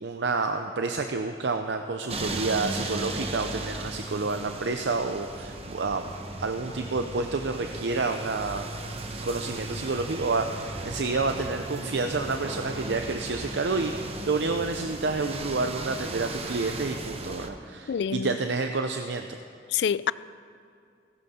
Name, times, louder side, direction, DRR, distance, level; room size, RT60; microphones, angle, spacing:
voice 1, 0.0-6.1 6.4-8.7 9.2-19.4, right 3 dB, 85° right, 0.6 m, -29 dB
sound 1, 2.1-17.5, right 2 dB, 35° right, 1.0 m, -36 dB
voice 2, 17.9-18.4 19.7-20.1, left 8 dB, 75° left, 0.3 m, -26 dB
16.0 x 16.0 x 4.3 m
head